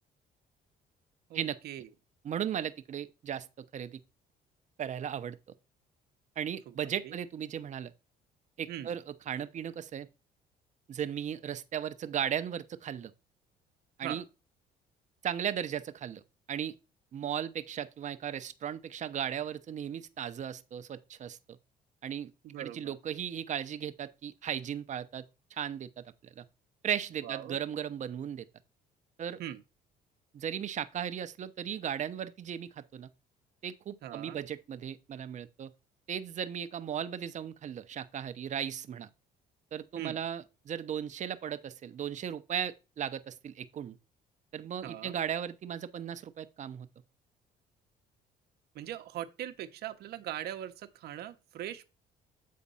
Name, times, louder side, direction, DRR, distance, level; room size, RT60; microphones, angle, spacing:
voice 1, 1.3-1.9 6.7-6.8 7.0-7.2 8.7-8.9 14.0-14.2 22.4-23.0 27.2-27.6 29.4-29.6 34.0-34.4 40.0-40.2 44.8-45.2 48.7-51.8, right 12 dB, 70° right, 1.0 m, -41 dB
voice 2, 2.2-4.0 4.8-5.4 6.4-7.9 8.6-10.1 10.9-13.1 14.0-14.2 15.2-16.2 16.5-16.8 17.1-21.6 22.0-22.3 22.6-25.2 25.5-26.0 26.4-26.5 26.8-28.5 29.2-29.4 30.3-33.1 33.6-35.7 36.1-39.1 39.7-44.0 44.5-46.9, right 9 dB, 45° right, 0.8 m, -36 dB
8.5 x 4.0 x 5.5 m
cardioid pair, 110°, 17 cm